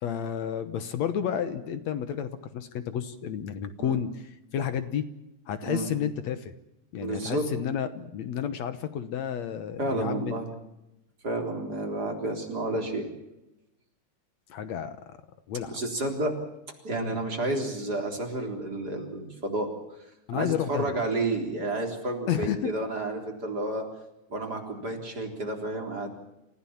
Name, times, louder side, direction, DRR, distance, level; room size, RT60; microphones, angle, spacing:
voice 1, 0.0-5.1 5.5-6.5 6.9-10.3 14.5-15.2 15.5-15.8 16.9-17.2 20.3-20.9 22.3-22.7, left 9 dB, 70° left, 11 dB, 2.3 m, -31 dB
voice 2, 5.6-5.9 7.0-7.5 9.8-10.5 11.2-13.1 15.7-16.4 16.8-19.7 20.3-23.9 24.3-26.1, right 2 dB, 30° right, 2 dB, 4.2 m, -31 dB
29.0 x 16.0 x 7.3 m, 0.91 s
omnidirectional pair, 3.4 m